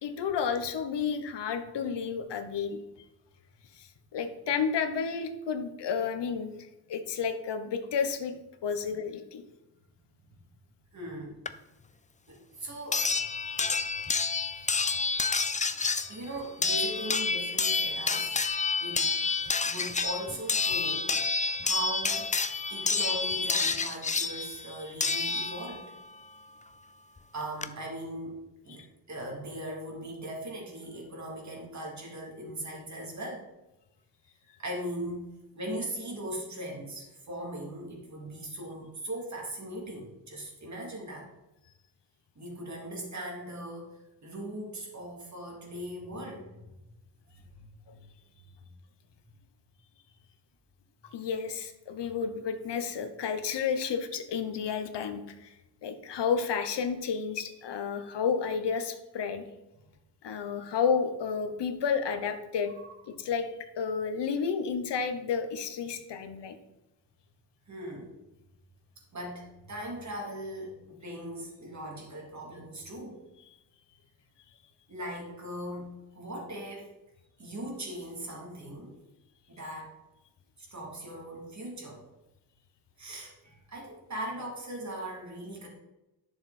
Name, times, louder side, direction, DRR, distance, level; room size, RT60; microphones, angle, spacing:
voice 1, 0.0-2.8 3.8-6.5 6.9-8.4 8.6-9.4 51.1-55.5 55.8-59.4 60.2-62.7 63.1-63.5 63.8-66.5, left 6 dB, 85° left, 8 dB, 1.1 m, -31 dB
voice 2, 10.9-11.4 12.3-13.1 16.1-18.4 18.8-19.1 19.6-22.3 22.7-26.0 27.3-33.5 34.6-41.3 42.3-46.7 47.3-48.0 48.6-48.7 62.8-62.9 67.7-68.1 69.1-73.2 74.9-76.9 77.4-79.0 79.5-80.0 80.6-82.0 83.0-85.7, right 1 dB, 45° right, -2 dB, 3.1 m, -39 dB
sound 1, 11.5-11.6 12.9-25.9 27.2-27.3 27.6-27.7, left 4 dB, 20° left, 0.4 m, -29 dB
10.5 x 6.8 x 4.3 m, 0.97 s
wide cardioid pair, 100°, 41 cm